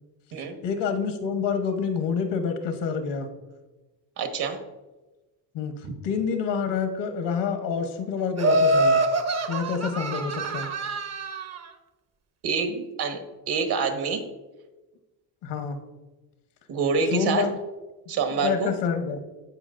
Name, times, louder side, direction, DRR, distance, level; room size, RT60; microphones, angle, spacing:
voice 1, 0.4-3.3 5.5-5.7 6.0-9.0 9.5-10.7 15.4-15.8 17.1-17.5 18.4-19.2, left 6 dB, 70° left, 7 dB, 1.1 m, -27 dB
voice 2, 4.2-4.6 5.8-5.9 12.4-14.2 16.7-17.4 18.1-18.7, right 5 dB, 60° right, 5 dB, 1.4 m, -26 dB
Laughter, 8.4-11.6, right 2 dB, 35° right, 0.8 m, -25 dB
14.5 x 4.9 x 2.5 m, 1.1 s
supercardioid pair, 90°, 43 cm